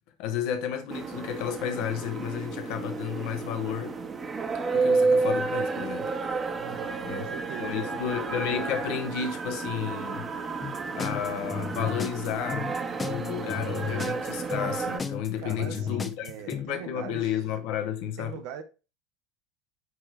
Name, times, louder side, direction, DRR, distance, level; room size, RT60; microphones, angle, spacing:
voice 1, 0.2-4.0 4.7-6.1 6.7-7.3 7.6-10.3 10.9-12.7 13.1-18.4, left 9 dB, 55° left, 1.0 m, -32 dB
sound 1, 0.9-15.0, right 4 dB, 25° right, 1.1 m, -31 dB
voice 2, 6.6-7.9 15.4-17.3 18.2-18.6, right 8 dB, 55° right, 1.0 m, -41 dB
sound 2, 10.6-16.7, left 6 dB, 20° left, 0.7 m, -33 dB
9.5 x 3.4 x 3.2 m
figure-of-eight pair, 75°, 0 cm